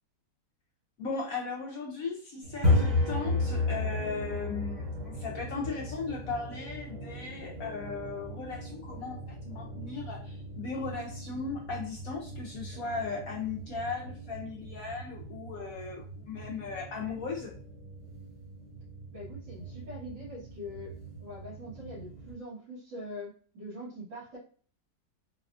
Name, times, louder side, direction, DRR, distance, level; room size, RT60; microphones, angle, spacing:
voice 1, 1.0-17.5, left 4 dB, 70° left, 0 dB, 0.8 m, -37 dB
sound 1, 2.4-22.3, left 2 dB, 30° right, 1.0 m, -35 dB
voice 2, 19.1-24.4, left 1 dB, 85° right, -10 dB, 2.0 m, -43 dB
4.0 x 2.3 x 2.4 m, 0.43 s
omnidirectional pair, 1.9 m